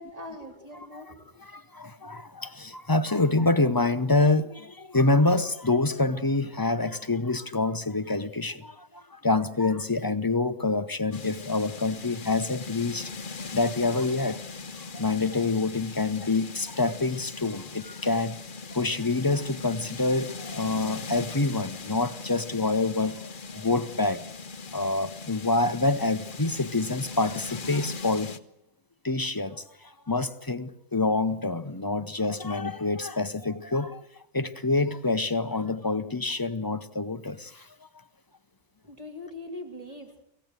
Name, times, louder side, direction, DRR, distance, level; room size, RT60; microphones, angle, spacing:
voice 1, 0.0-1.3 38.8-40.2, left 1 dB, 30° right, 3.7 m, -41 dB
voice 2, 1.4-13.1 13.5-14.4 14.9-18.4 18.7-24.2 24.7-28.3 29.0-34.0 34.3-37.7, left 3 dB, 20° left, 0.8 m, -26 dB
sound 1, 11.1-28.4, left 4 dB, 45° left, 1.2 m, -40 dB
25.0 x 16.5 x 9.2 m
omnidirectional pair, 1.3 m